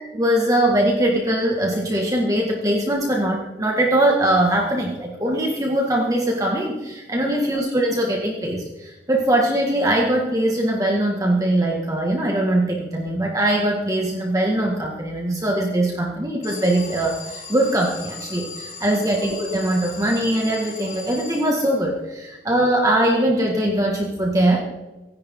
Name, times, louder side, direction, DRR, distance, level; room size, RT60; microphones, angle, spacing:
voice 1, 0.1-24.6, right 1 dB, 20° right, -1 dB, 2.0 m, -21 dB
Alarm, 16.4-22.0, left 3 dB, 50° left, 5.7 m, -38 dB
25.5 x 10.5 x 3.8 m, 1.1 s
head